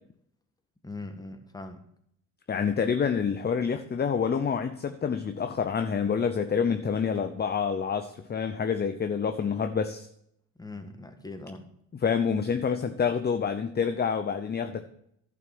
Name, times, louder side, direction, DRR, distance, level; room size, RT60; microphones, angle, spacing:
voice 1, 0.8-1.8 10.5-11.6, left 2 dB, 10° left, 6 dB, 1.6 m, -41 dB
voice 2, 2.5-10.1 12.0-14.8, left 6 dB, 25° left, 9 dB, 0.7 m, -27 dB
10.5 x 6.0 x 6.1 m, 0.71 s
supercardioid pair, 70°, 39 cm